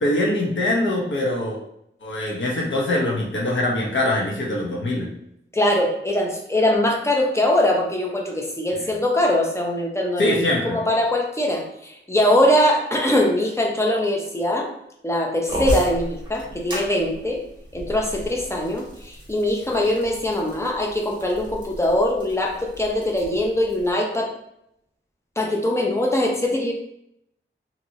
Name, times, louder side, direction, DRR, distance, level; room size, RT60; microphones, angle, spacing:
voice 1, 0.0-1.6 2.0-5.1 8.7-8.9 10.2-10.8, left 1 dB, 65° left, -3 dB, 0.9 m, -23 dB
voice 2, 5.5-14.7 15.0-17.4 17.7-24.3 25.4-26.7, left 1 dB, 15° left, 0 dB, 0.7 m, -22 dB
sound 1, 15.5-23.9, equal, 20° right, 1.4 m, -34 dB
2.9 x 2.8 x 2.7 m, 0.76 s
wide cardioid pair, 75°, 21 cm